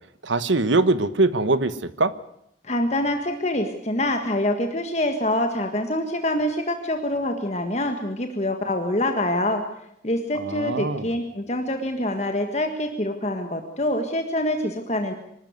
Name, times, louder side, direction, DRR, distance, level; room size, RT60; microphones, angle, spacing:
voice 1, 0.2-2.1 10.4-11.1, right 2 dB, 90° right, 13 dB, 1.3 m, -22 dB
voice 2, 2.6-9.6 10.0-15.1, left 1 dB, 35° left, 5 dB, 1.6 m, -25 dB
24.5 x 13.0 x 9.6 m, 0.76 s
head